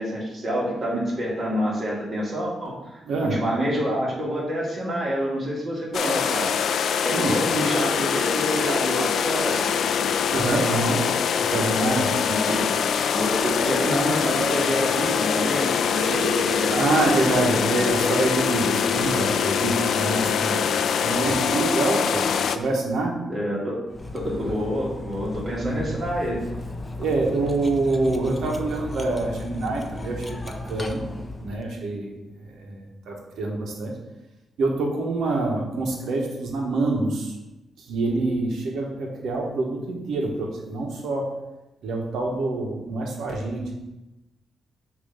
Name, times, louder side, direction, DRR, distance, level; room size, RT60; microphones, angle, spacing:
voice 1, 0.0-3.0 3.3-6.5 7.0-9.6 12.2-12.7 13.1-17.1 23.3-23.8 24.1-26.4, equal, 35° right, -5 dB, 2.3 m, -27 dB
voice 2, 3.1-3.4 7.1-7.4 10.3-11.1 11.5-12.2 16.8-20.7 21.0-23.1 25.6-25.8 27.0-31.0 31.4-32.1 32.5-33.9 34.6-37.3 37.9-41.3 41.8-43.7, right 2 dB, 75° right, 0 dB, 1.3 m, -26 dB
sound 1, 5.9-22.6, left 7 dB, 65° left, 0.4 m, -24 dB
Cutlery silverware, 23.9-31.6, left 2 dB, 20° left, 0.6 m, -35 dB
7.0 x 3.0 x 5.6 m, 1.0 s
cardioid pair, 125°, 0 cm